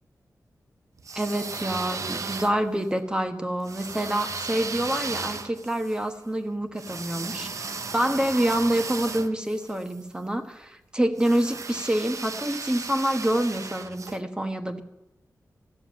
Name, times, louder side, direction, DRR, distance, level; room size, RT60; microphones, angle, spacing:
sound 1, 1.0-2.9 3.6-10.0 11.2-14.2, right 4 dB, 55° right, 0.7 m, -36 dB
voice 1, 1.1-14.8, right 1 dB, 15° right, 6 dB, 1.2 m, -27 dB
15.0 x 7.1 x 9.3 m, 0.95 s
wide cardioid pair, 95°, 7 cm